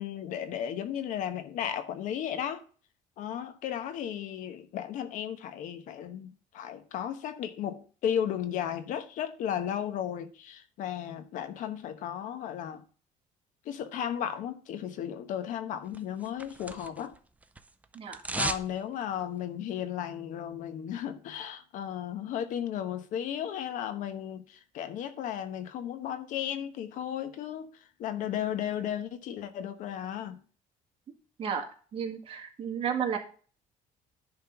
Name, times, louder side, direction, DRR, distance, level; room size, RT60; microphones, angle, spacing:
voice 1, 0.0-2.6 3.2-12.8 13.6-17.1 18.4-27.7 28.0-30.4, left 9 dB, 65° left, 1.0 m, -34 dB
sound 1, 15.9-17.2 17.4-18.7 19.0-19.1, right 3 dB, 10° right, 0.5 m, -35 dB
voice 2, 31.9-33.2, right 7 dB, 40° right, 1.8 m, -32 dB
10.5 x 3.7 x 5.8 m
cardioid pair, 150°, 14 cm